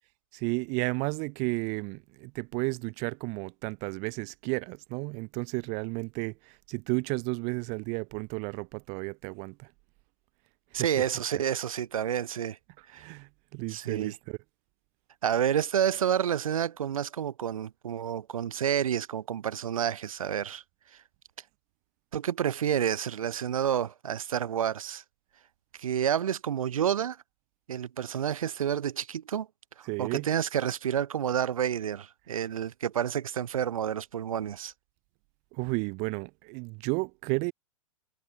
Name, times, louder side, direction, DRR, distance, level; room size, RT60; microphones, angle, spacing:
voice 1, 0.3-9.7 10.7-10.9 12.9-14.4 29.9-30.3 35.5-37.5, right 33 dB, 40° right, 2.0 m, -33 dB
voice 2, 10.7-12.6 12.9-13.1 13.7-14.1 15.2-20.6 22.1-25.0 25.8-27.2 27.7-29.5 29.8-34.7, right 9 dB, 80° right, 0.6 m, -29 dB
hypercardioid pair, 115°, 18 cm